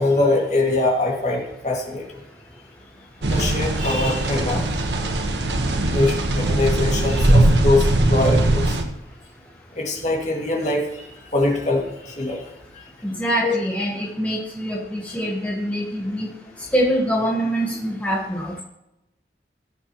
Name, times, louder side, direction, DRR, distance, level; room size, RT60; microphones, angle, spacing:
voice 1, 0.0-2.1 3.3-4.7 5.9-8.8 9.8-11.1 11.3-12.4 13.4-13.5, left 2 dB, 40° left, -1 dB, 2.1 m, -22 dB
sound 1, 3.2-8.8, right 1 dB, 80° right, 1.2 m, -20 dB
voice 2, 13.0-16.3 16.7-18.6, equal, 10° left, -3 dB, 1.3 m, -24 dB
16.0 x 6.7 x 3.0 m, 0.91 s
head